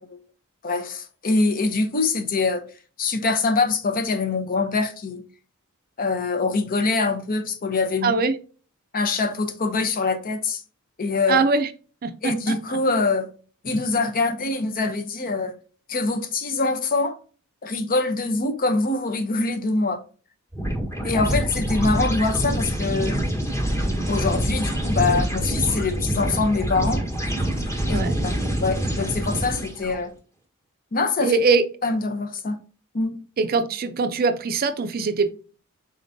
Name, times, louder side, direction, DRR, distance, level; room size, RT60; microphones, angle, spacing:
voice 1, 0.6-2.6 3.0-5.2 6.0-8.1 8.9-10.6 11.0-11.4 12.2-13.3 13.6-15.6 15.9-17.2 17.6-20.0 21.0-23.2 24.1-27.0 27.9-28.3 28.6-30.2 30.9-31.4 31.8-32.6 32.9-33.2, left 3 dB, 40° left, 0.7 m, -24 dB
voice 2, 8.0-8.4 11.3-11.7 12.0-12.8 27.9-28.2 31.2-31.6 33.4-35.3, right 4 dB, 40° right, 0.4 m, -22 dB
sound 1, 20.5-30.0, right 1 dB, 15° left, 1.2 m, -25 dB
4.4 x 3.7 x 2.6 m
head